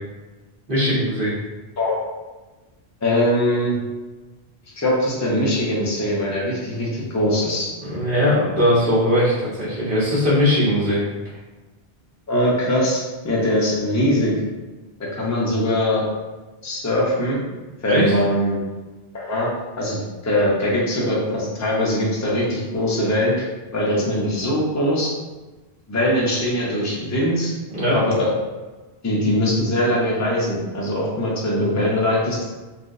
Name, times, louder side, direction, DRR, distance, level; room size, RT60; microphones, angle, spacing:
voice 1, 0.7-1.3 7.8-11.0 17.9-18.1 27.7-28.0, left 1 dB, 55° right, -8 dB, 1.4 m, -19 dB
voice 2, 3.0-3.8 4.8-7.7 12.3-14.3 15.0-16.0 16.6-17.4 17.8-18.6 19.1-19.5 19.8-23.5 23.7-25.1 25.9-27.5 27.9-28.3 29.0-32.5, left 1 dB, 20° left, -4 dB, 0.6 m, -21 dB
3.7 x 2.6 x 2.6 m, 1.2 s
omnidirectional pair, 1.1 m